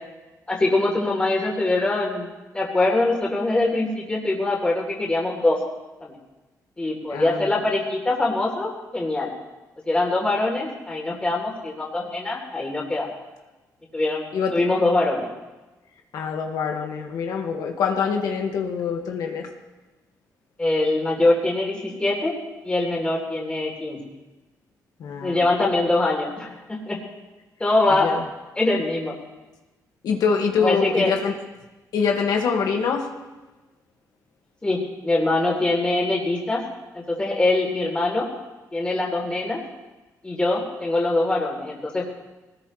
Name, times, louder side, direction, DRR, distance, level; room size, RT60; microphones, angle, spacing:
voice 1, 0.5-2.3 2.5-5.6 6.0-6.2 6.8-9.3 9.9-13.1 13.9-14.2 14.5-15.3 20.6-22.3 22.6-24.0 25.2-27.0 27.6-28.1 28.6-29.1 30.6-31.1 34.6-36.6 37.1-38.3 38.7-39.6 40.2-42.1, left 2 dB, 15° left, -3 dB, 3.6 m, -23 dB
voice 2, 7.1-7.6 14.3-14.6 16.1-19.5 25.0-25.4 28.0-28.2 30.0-31.3 31.9-33.1, left 6 dB, 80° left, 2 dB, 1.9 m, -24 dB
21.0 x 19.0 x 3.3 m, 1.1 s
cardioid pair, 125°, 7 cm